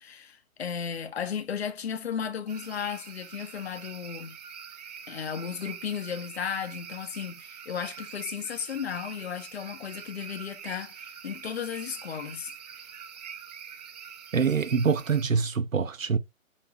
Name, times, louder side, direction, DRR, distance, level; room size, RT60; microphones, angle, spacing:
voice 1, 0.0-4.4 5.1-12.5, left 7 dB, 50° left, 1.5 m, -35 dB
sound 1, 2.5-15.2, right 7 dB, 30° right, 0.8 m, -44 dB
voice 2, 14.3-16.2, right 6 dB, 75° right, 1.2 m, -25 dB
7.6 x 4.6 x 5.3 m
figure-of-eight pair, 140°, 40 cm